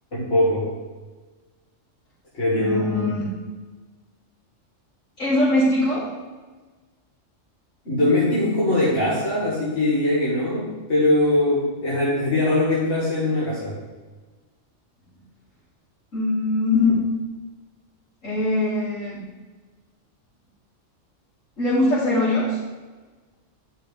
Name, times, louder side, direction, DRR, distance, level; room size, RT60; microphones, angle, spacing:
voice 1, 0.1-0.7 2.3-3.2 7.9-13.8, left 1 dB, 65° left, -8 dB, 2.4 m, -21 dB
voice 2, 2.5-3.2 5.2-6.1 16.1-17.0 18.2-19.2 21.6-22.6, left 2 dB, 85° left, -12 dB, 3.8 m, -21 dB
10.5 x 5.7 x 5.1 m, 1.3 s
omnidirectional pair, 1.3 m